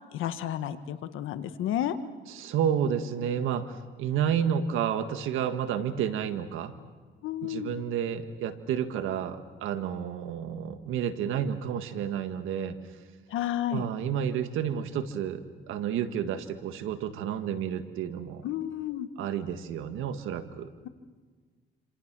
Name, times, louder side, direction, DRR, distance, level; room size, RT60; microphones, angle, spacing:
voice 1, 0.0-2.0 7.2-7.8 13.3-13.8 18.4-19.1, left 11 dB, 90° left, 10 dB, 1.5 m, -31 dB
voice 2, 2.3-6.7 7.4-12.8 13.7-18.5 19.2-20.7, right 8 dB, 90° right, 9 dB, 1.7 m, -30 dB
28.5 x 26.5 x 6.2 m, 1.5 s
cardioid pair, 90°, 20 cm